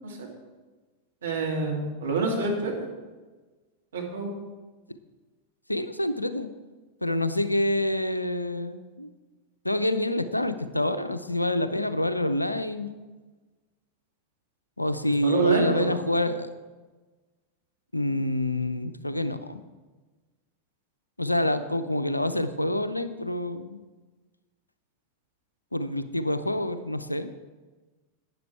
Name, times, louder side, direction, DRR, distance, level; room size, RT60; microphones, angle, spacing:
voice 1, 1.2-2.9 3.9-4.3 15.2-15.9, right 4 dB, 65° right, 0 dB, 2.4 m, -27 dB
voice 2, 5.7-6.5 7.0-9.1 9.6-12.9 14.8-16.5 17.9-19.6 21.2-23.8 25.7-27.3, left 1 dB, 85° left, 12 dB, 0.6 m, -27 dB
12.0 x 9.2 x 4.7 m, 1.3 s
figure-of-eight pair, 90°, 0 cm